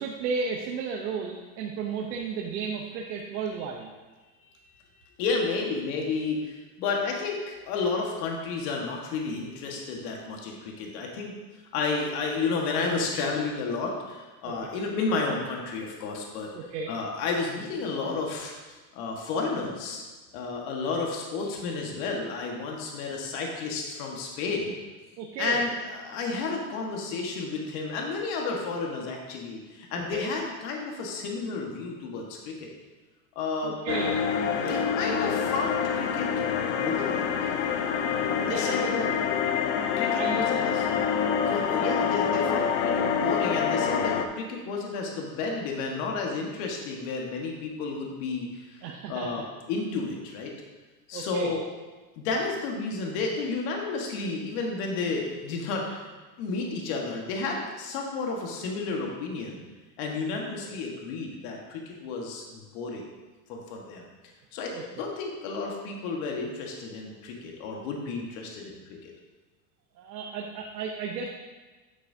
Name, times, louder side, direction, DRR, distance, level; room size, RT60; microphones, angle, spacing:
voice 1, 0.0-3.9 13.2-13.3 14.4-14.7 16.5-16.9 25.2-25.7 30.1-30.3 33.6-34.9 38.0-38.9 40.0-40.7 48.8-49.4 51.1-51.5 60.6-60.7 64.7-64.8 69.9-71.3, right 5 dB, 90° right, 0 dB, 1.1 m, -34 dB
voice 2, 5.2-11.4 11.7-16.5 16.9-18.5 18.9-20.0 20.3-24.7 25.4-32.7 33.4-33.7 34.7-36.3 36.5-37.6 38.3-39.1 40.0-40.9 41.5-48.8 49.1-49.4 49.7-50.5 51.1-51.6 52.2-56.1 56.4-59.7 60.0-63.0 63.5-64.0 64.5-69.1, left 4 dB, 60° left, 0 dB, 1.7 m, -31 dB
sound 1, 33.9-44.3, left 7 dB, 85° left, 0.9 m, -26 dB
9.7 x 6.8 x 2.8 m, 1.3 s
supercardioid pair, 135°, 50 cm